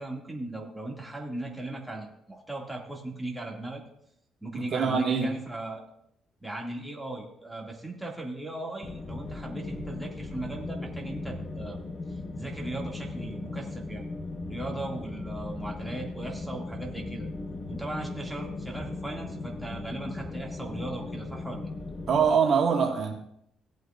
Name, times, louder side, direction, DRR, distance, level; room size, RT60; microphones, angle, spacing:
voice 1, 0.0-3.8 4.4-5.8 6.4-11.8 12.1-14.1 14.5-17.3 17.7-21.7, right 2 dB, 5° right, -2 dB, 2.3 m, -38 dB
voice 2, 4.5-5.3 22.1-23.1, right 6 dB, 60° right, 1 dB, 1.9 m, -24 dB
sound 1, 8.8-22.3, left 3 dB, 40° left, 1.1 m, -37 dB
17.5 x 8.1 x 2.6 m, 0.72 s
cardioid pair, 85°, 0 cm